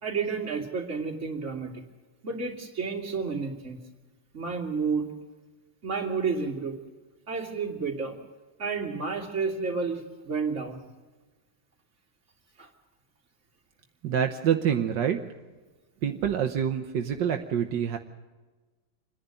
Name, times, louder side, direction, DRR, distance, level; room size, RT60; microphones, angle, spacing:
voice 1, 0.0-1.8 2.2-3.8 4.3-5.1 5.8-6.8 7.3-8.2 8.6-10.8 12.6-12.7, right 5 dB, 40° right, 0 dB, 2.9 m, -31 dB
voice 2, 14.0-15.2 16.0-18.0, right 8 dB, 80° right, 5 dB, 1.6 m, -26 dB
27.0 x 10.5 x 9.0 m, 1.3 s
omnidirectional pair, 1.9 m